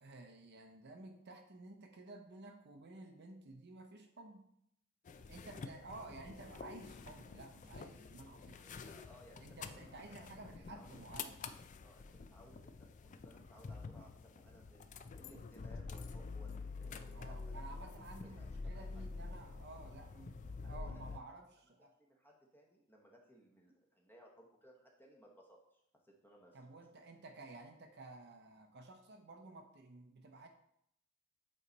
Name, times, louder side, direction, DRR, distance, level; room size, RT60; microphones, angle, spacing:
voice 1, 0.0-4.5 5.3-8.7 9.4-11.4 17.1-22.0 26.5-30.5, right 2 dB, 55° right, 4 dB, 0.7 m, -53 dB
sound 1, 5.1-21.2, left 4 dB, 35° left, 0.3 m, -48 dB
voice 2, 8.5-11.0 11.8-14.9 15.1-17.9 18.2-18.9 20.6-21.2 21.8-26.6, equal, 10° left, -1 dB, 1.0 m, -62 dB
8.4 x 3.2 x 4.0 m, 0.74 s
head